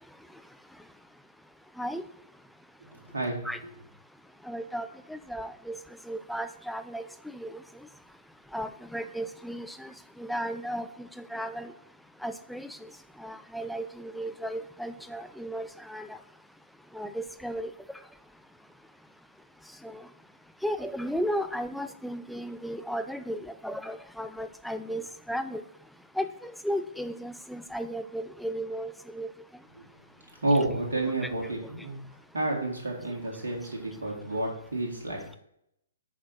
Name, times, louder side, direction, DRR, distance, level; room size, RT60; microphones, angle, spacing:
voice 1, 2.9-3.4 29.8-29.9 30.4-32.0 32.3-35.4, right 2 dB, 65° right, -1 dB, 2.3 m, -30 dB
voice 2, 4.5-5.8 6.1-7.1 7.3-7.6 8.5-9.9 10.2-10.9 11.2-11.7 12.2-12.8 13.2-16.2 16.9-17.7 19.8-20.0 20.6-25.0 25.3-25.6 26.2-29.3 31.2-31.3, equal, ahead, 9 dB, 0.4 m, -34 dB
6.5 x 4.3 x 5.4 m, 0.75 s
figure-of-eight pair, 120°, 0 cm